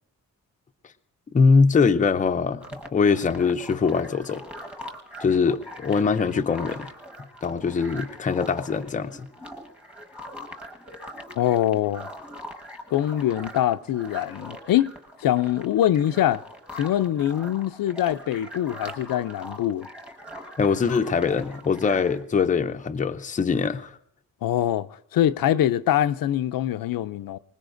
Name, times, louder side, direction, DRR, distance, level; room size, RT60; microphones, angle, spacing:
voice 1, 1.3-2.6 2.9-4.4 5.2-6.9 7.4-9.3 20.6-23.9, left 5 dB, 25° left, 0.5 m, -22 dB
sound 1, 2.6-22.2, equal, 5° right, 1.2 m, -42 dB
voice 2, 11.4-12.1 12.9-14.9 15.2-16.4 16.8-19.9 24.4-27.4, left 12 dB, 85° left, 0.5 m, -23 dB
25.0 x 20.0 x 2.6 m
wide cardioid pair, 175°, 34 cm